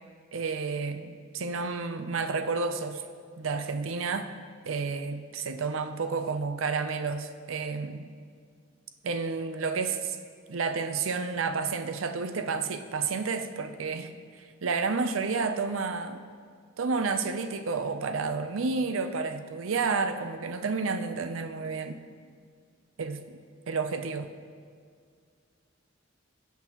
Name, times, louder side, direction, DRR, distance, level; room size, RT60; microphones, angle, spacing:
voice 1, 0.3-3.0 3.4-4.3 4.6-8.1 9.0-10.2 10.5-16.2 16.8-22.0 23.0-23.4 23.7-24.3, right 4 dB, 80° right, 8 dB, 0.6 m, -30 dB
16.0 x 5.9 x 3.0 m, 2.1 s
head